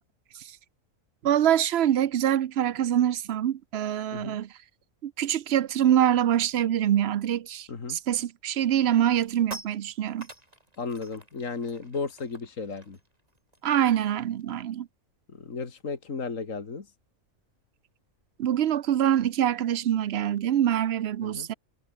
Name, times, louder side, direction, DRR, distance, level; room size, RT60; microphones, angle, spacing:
voice 1, 1.2-4.5 5.0-10.3 13.6-14.9 18.4-21.5, right 10 dB, 55° right, 0.8 m, -25 dB
sound 1, 8.2-8.4 8.8-14.7 15.0-15.2 15.5-20.5, right 1 dB, 25° right, 4.7 m, -50 dB
voice 2, 10.8-13.0 15.3-16.9 21.2-21.5, left 4 dB, 70° left, 2.7 m, -34 dB
omnidirectional pair, 1.4 m